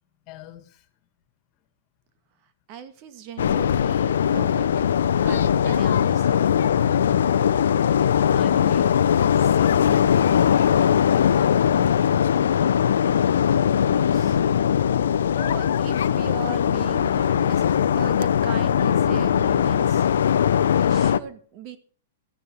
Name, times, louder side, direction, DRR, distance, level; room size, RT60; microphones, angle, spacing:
voice 1, 0.3-0.9 7.0-7.2 7.8-9.0 9.4-12.2, left 12 dB, 40° left, 11 dB, 2.1 m, -40 dB
voice 2, 2.7-4.9 5.2-6.6 13.5-14.4 15.3-17.6 17.9-20.1 20.7-21.8, right 7 dB, 45° right, 10 dB, 2.0 m, -39 dB
sound 1, 3.4-21.2, left 8 dB, 80° left, 0.7 m, -20 dB
14.5 x 9.5 x 5.8 m, 0.43 s
hypercardioid pair, 120°, 0 cm